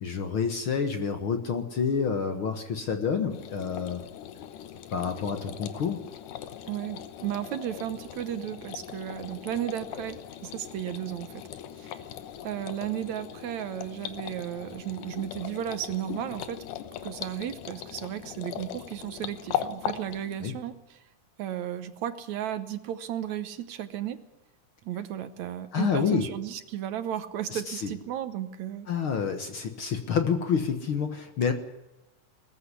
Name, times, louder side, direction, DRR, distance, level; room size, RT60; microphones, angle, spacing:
voice 1, 0.0-4.0 4.9-6.0 20.4-20.5 25.7-26.3 27.5-27.9 28.9-31.5, left 6 dB, 50° left, 7 dB, 1.8 m, -28 dB
sound 1, 3.3-20.4, left 10 dB, 90° left, 2.7 m, -39 dB
voice 2, 6.7-11.5 11.8-12.1 12.4-16.7 17.0-21.0 21.4-24.2 24.8-28.9, right 11 dB, 70° right, 11 dB, 2.2 m, -34 dB
20.0 x 14.5 x 9.8 m, 0.99 s
omnidirectional pair, 3.6 m